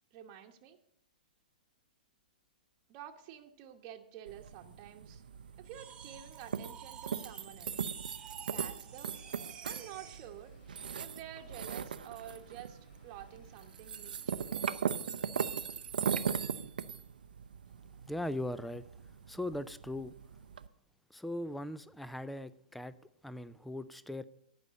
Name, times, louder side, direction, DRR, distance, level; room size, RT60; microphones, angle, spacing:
voice 1, 0.1-0.8 2.9-5.2 5.6-7.9 8.5-9.1 9.6-10.5 10.9-14.8, right 10 dB, 40° right, 3 dB, 1.0 m, -50 dB
Train, 1.3-1.4 1.8-1.9 2.1-19.5, left 1 dB, 60° left, 3.4 m, -67 dB
sound 1, 4.3-20.7, right 7 dB, 75° right, 0.5 m, -39 dB
sound 2, 5.6-10.4, right 8 dB, 20° right, 1.3 m, -52 dB
voice 2, 18.1-18.8 19.3-20.1 21.1-23.0 23.2-24.2, left 1 dB, ahead, 15 dB, 0.3 m, -39 dB
11.0 x 5.3 x 8.1 m, 0.71 s
hypercardioid pair, 120°, 5 cm